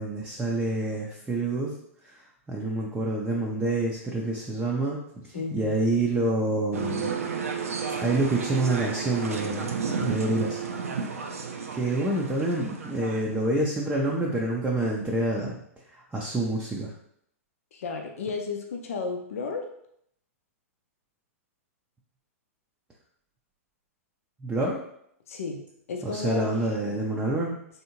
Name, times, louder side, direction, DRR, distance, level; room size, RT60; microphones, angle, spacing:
voice 1, 0.0-1.7 2.0-7.1 7.9-9.7 10.0-10.6 11.7-15.6 15.9-16.9 24.4-24.8 26.0-27.5, right 2 dB, 10° right, -3 dB, 0.5 m, -27 dB
voice 2, 5.3-5.8 17.7-19.6 25.3-26.5, left 4 dB, 70° left, 3 dB, 0.5 m, -33 dB
sound 1, 6.7-13.5, right 5 dB, 75° right, 0.5 m, -32 dB
3.4 x 2.7 x 2.8 m, 0.70 s
hypercardioid pair, 110°, 8 cm